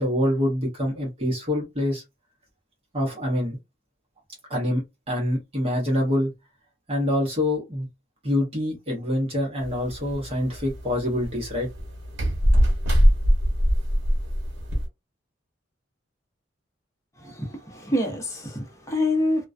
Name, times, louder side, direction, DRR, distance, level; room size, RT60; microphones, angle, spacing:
voice 1, 0.0-2.0 2.9-3.6 4.5-6.3 6.9-7.9 8.2-11.7, left 1 dB, 30° right, 0.8 m, -25 dB
sound 1, 9.6-14.9, equal, 75° right, 1.0 m, -23 dB
voice 2, 17.2-19.5, left 1 dB, 15° left, 0.7 m, -26 dB
2.2 x 2.2 x 2.4 m
head